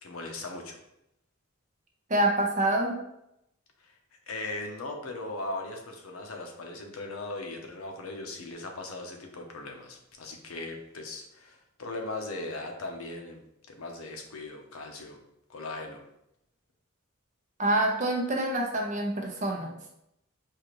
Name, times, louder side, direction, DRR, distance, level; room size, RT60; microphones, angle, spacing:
voice 1, 0.0-0.8 3.8-3.9 4.3-13.4 13.7-15.2 15.5-16.0, left 2 dB, 80° left, 3 dB, 0.7 m, -38 dB
voice 2, 2.1-3.0 17.6-19.8, right 1 dB, 35° right, 1 dB, 0.7 m, -26 dB
4.6 x 2.4 x 3.1 m, 0.81 s
head